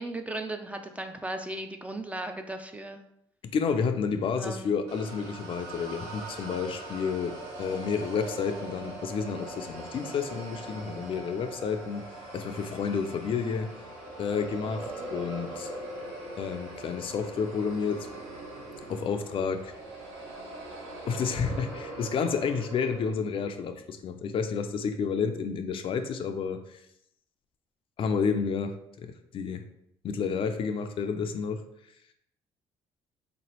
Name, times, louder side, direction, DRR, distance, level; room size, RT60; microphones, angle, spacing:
voice 1, 0.0-3.0 4.4-4.7 5.7-5.9, right 1 dB, 10° right, 6 dB, 0.3 m, -36 dB
voice 2, 3.5-12.1 12.3-13.7 14.2-15.7 16.4-18.1 18.9-19.7 21.1-26.8 28.0-29.6 30.0-31.6, left 6 dB, 55° left, 7 dB, 0.4 m, -30 dB
sound 1, 4.9-23.1, right 2 dB, 90° right, 1.0 m, -41 dB
3.7 x 3.0 x 2.9 m, 0.76 s
cardioid pair, 100°, 11 cm